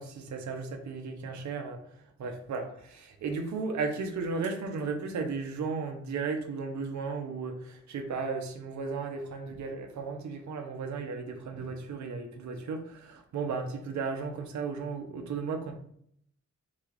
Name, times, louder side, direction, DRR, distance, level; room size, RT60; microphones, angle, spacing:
voice 1, 0.0-1.8 2.2-2.7 2.9-15.7, right 4 dB, 75° right, 4 dB, 0.7 m, -35 dB
4.0 x 2.4 x 4.6 m, 0.68 s
cardioid pair, 90°, 29 cm